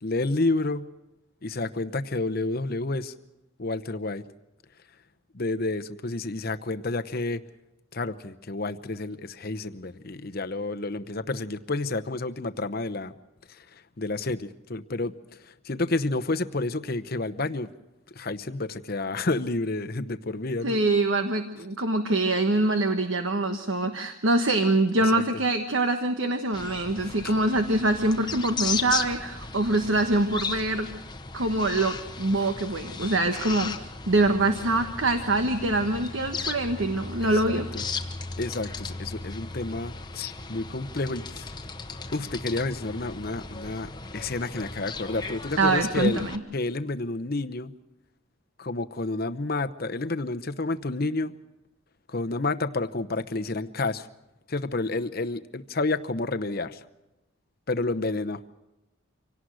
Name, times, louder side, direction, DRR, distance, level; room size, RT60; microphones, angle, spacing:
voice 1, 0.0-0.9 1.4-3.1 3.6-4.2 5.3-7.4 7.9-13.1 13.5-17.7 18.1-20.8 25.1-25.2 27.0-27.3 36.4-36.6 37.2-37.9 38.4-41.5 42.1-46.2 46.5-47.7 48.6-51.3 52.1-54.1 54.5-56.8 57.7-58.4, left 2 dB, 45° left, 9 dB, 0.9 m, -30 dB
voice 2, 20.6-30.9 31.3-37.7 45.6-46.4, right 2 dB, 65° right, 7 dB, 1.3 m, -24 dB
sound 1, 26.5-46.4, left 4 dB, 20° left, 1.1 m, -36 dB
25.5 x 18.0 x 6.4 m, 0.97 s
head